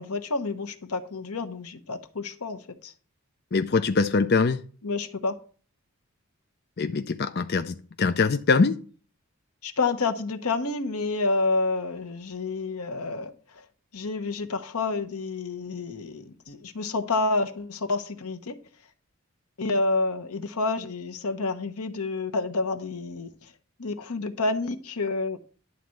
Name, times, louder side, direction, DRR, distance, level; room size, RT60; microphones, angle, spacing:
voice 1, 0.0-2.9 4.8-5.4 9.6-13.6 13.9-18.6 19.6-23.5 23.8-25.4, left 3 dB, 90° left, 1.1 m, -29 dB
voice 2, 3.5-4.6 6.8-8.8, left 4 dB, 45° left, 0.5 m, -23 dB
11.0 x 4.1 x 7.7 m
head